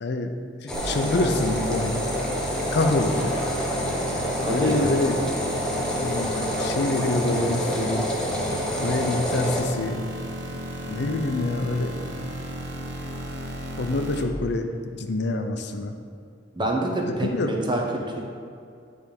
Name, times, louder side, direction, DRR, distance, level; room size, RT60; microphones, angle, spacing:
voice 1, 0.0-0.3 0.6-2.0 2.7-3.4 4.5-5.2 5.9-8.1 8.8-10.1 10.9-11.9 13.8-15.9 17.1-17.6, left 2 dB, 65° left, 6 dB, 0.6 m, -26 dB
sound 1, 0.7-9.6, equal, 5° left, 0.9 m, -28 dB
sound 2, 0.7-14.2, equal, 65° right, 0.9 m, -34 dB
voice 2, 4.4-4.9 16.5-18.2, right 1 dB, 25° right, 0 dB, 0.9 m, -27 dB
9.3 x 3.5 x 5.3 m, 2.4 s
head